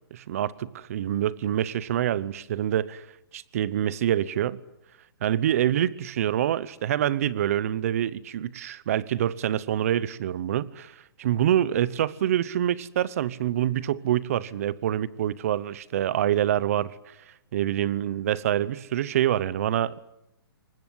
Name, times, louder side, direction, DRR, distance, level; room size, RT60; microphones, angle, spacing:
voice 1, 0.1-3.0 3.3-4.6 5.2-10.9 11.2-16.9 17.5-20.0, right 11 dB, 35° right, 0.9 m, -26 dB
23.5 x 20.0 x 9.7 m
hypercardioid pair, 170°, 13 cm